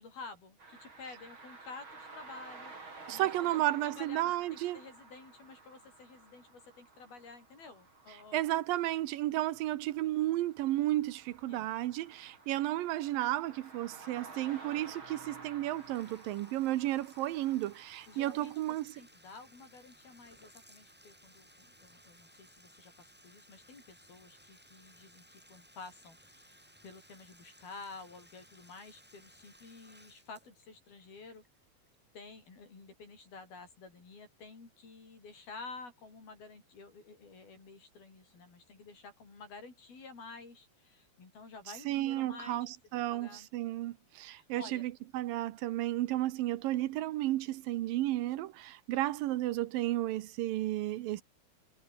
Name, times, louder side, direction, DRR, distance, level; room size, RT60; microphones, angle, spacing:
voice 1, 0.0-3.5 3.8-8.6 11.5-11.7 18.1-31.4 32.1-42.7 42.9-43.5 44.4-44.8, left 4 dB, 85° left, 10.0 m, -51 dB
sound 1, 0.6-18.5, right 3 dB, 35° right, 5.3 m, -53 dB
voice 2, 3.1-4.8 8.3-18.9 41.9-51.2, right 15 dB, 75° right, 2.6 m, -33 dB
Bathtub (filling or washing), 15.5-32.3, equal, 5° right, 3.3 m, -61 dB
omnidirectional pair, 4.2 m